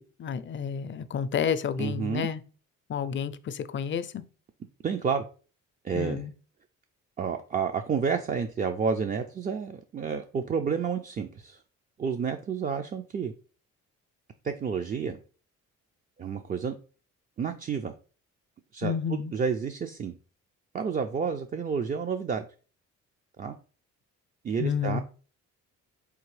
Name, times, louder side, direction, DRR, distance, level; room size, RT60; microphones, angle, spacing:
voice 1, 0.2-2.4 2.9-4.2 5.9-6.3 18.8-19.3 24.6-25.0, left 7 dB, 40° left, 0.4 m, -30 dB
voice 2, 1.8-2.3 4.8-5.2 5.8-6.2 7.2-11.6 12.0-13.3 14.4-15.2 16.2-16.7 17.4-17.9 18.7-20.1 20.7-22.4 23.4-23.5 24.4-25.0, right 6 dB, 30° right, 0.3 m, -30 dB
3.9 x 3.4 x 3.2 m
cardioid pair, 90°, 30 cm